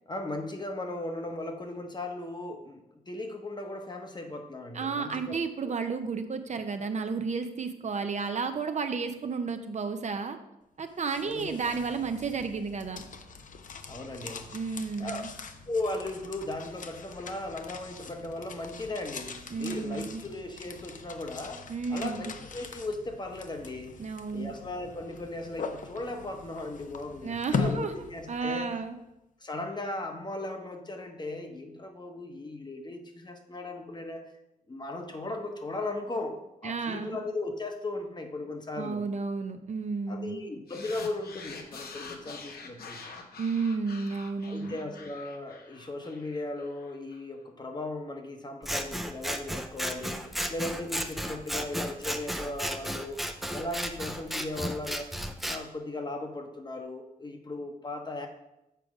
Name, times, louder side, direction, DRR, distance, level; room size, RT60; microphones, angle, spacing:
voice 1, 0.1-5.3 5.6-5.7 11.2-11.5 13.9-14.7 15.0-15.2 15.7-24.0 24.3-28.8 29.4-34.3 34.7-39.1 40.1-43.2 44.5-50.2 50.5-53.2 53.5-55.2 55.5-58.3, left 2 dB, 30° left, 5 dB, 0.9 m, -37 dB
voice 2, 4.7-10.4 10.8-13.0 14.5-15.3 19.5-20.2 21.7-22.3 24.0-24.5 27.2-27.9 28.3-29.0 36.6-37.2 38.8-40.4 43.4-44.8, right 5 dB, 50° right, 8 dB, 0.6 m, -32 dB
sound 1, 10.8-28.8, left 5 dB, 55° left, 0.6 m, -41 dB
sound 2, 40.7-47.2, left 4 dB, 85° left, 0.9 m, -46 dB
Scissors, 48.6-55.6, equal, ahead, 0.5 m, -34 dB
6.8 x 4.9 x 4.8 m, 0.89 s
wide cardioid pair, 110°, 16 cm